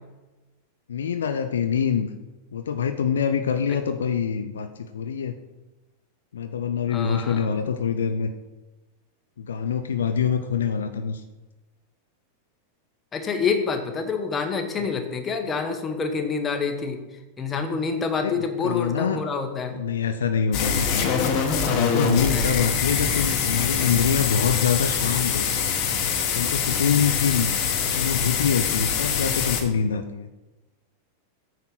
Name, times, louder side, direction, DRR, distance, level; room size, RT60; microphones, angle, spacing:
voice 1, 0.9-2.1 2.5-5.4 6.3-8.3 9.4-11.2 18.2-19.2 19.7-21.1 21.7-25.7 26.3-27.6 27.9-30.3, left 7 dB, 65° left, 8 dB, 0.5 m, -25 dB
voice 2, 6.9-7.5 13.1-17.0 17.4-19.8 22.3-22.5, left 5 dB, 20° left, 5 dB, 1.2 m, -27 dB
sound 1, 20.5-29.6, left 6 dB, 40° left, 1.2 m, -24 dB
9.0 x 4.2 x 6.0 m, 1.1 s
figure-of-eight pair, 90°, 0 cm